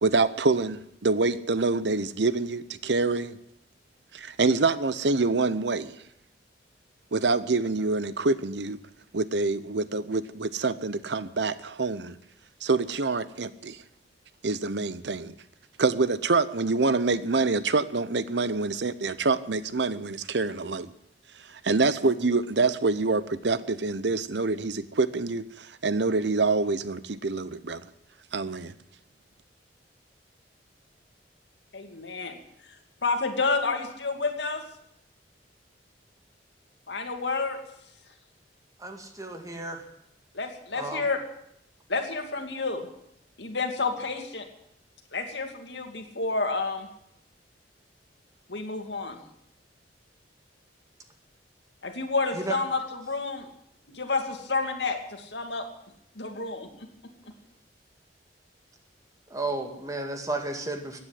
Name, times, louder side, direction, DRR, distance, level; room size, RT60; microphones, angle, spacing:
voice 1, 0.0-3.4 4.1-6.0 7.1-8.8 9.1-12.2 12.6-13.8 14.4-15.3 15.8-20.9 21.5-27.9 28.3-28.7, right 3 dB, 75° right, 0.8 m, -26 dB
voice 2, 31.7-32.4 33.0-34.6 36.9-37.6 40.3-41.2 41.9-42.9 43.4-44.5 45.1-46.9 48.5-49.2 51.8-53.5 53.9-55.7 56.1-56.9, left 3 dB, 80° left, 2.6 m, -30 dB
voice 3, 38.8-39.9 40.7-41.1 52.3-52.6 59.3-61.0, right 2 dB, 20° right, 2.1 m, -33 dB
15.5 x 9.6 x 9.8 m
head